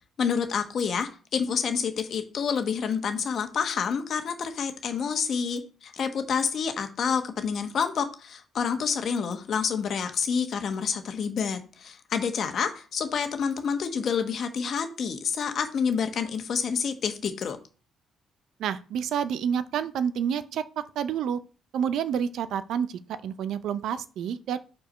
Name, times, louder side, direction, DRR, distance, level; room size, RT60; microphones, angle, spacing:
voice 1, 0.2-17.6, left 6 dB, 60° left, 7 dB, 1.2 m, -28 dB
voice 2, 18.6-21.4 21.7-24.6, right 8 dB, 75° right, 14 dB, 0.5 m, -29 dB
5.1 x 4.5 x 5.6 m, 0.36 s
cardioid pair, 90°, 0 cm